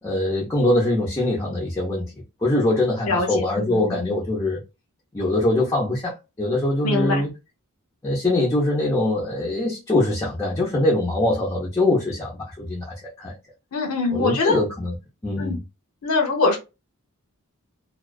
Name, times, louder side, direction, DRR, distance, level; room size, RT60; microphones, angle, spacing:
voice 1, 0.0-2.1 2.4-4.6 5.1-7.3 8.0-13.4 14.1-15.0 15.2-15.6, left 1 dB, 15° left, 0.6 m, -23 dB
voice 2, 3.7-4.1 6.8-7.2 13.7-14.6 15.4-15.6 16.0-16.6, left 3 dB, 75° left, 0.6 m, -23 dB
2.3 x 2.3 x 2.3 m
head